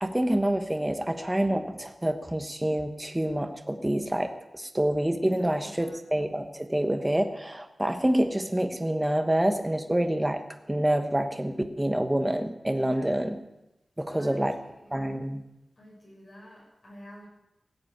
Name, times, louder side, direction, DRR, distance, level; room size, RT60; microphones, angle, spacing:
voice 1, 0.0-10.4 10.7-13.4 14.0-14.6 14.9-15.4, right 1 dB, 15° right, 6 dB, 1.2 m, -27 dB
voice 2, 5.4-6.0 12.7-13.2 14.1-14.9 15.8-17.2, equal, 40° left, -7 dB, 7.1 m, -50 dB
17.0 x 8.5 x 6.7 m, 0.92 s
wide cardioid pair, 105°, 0 cm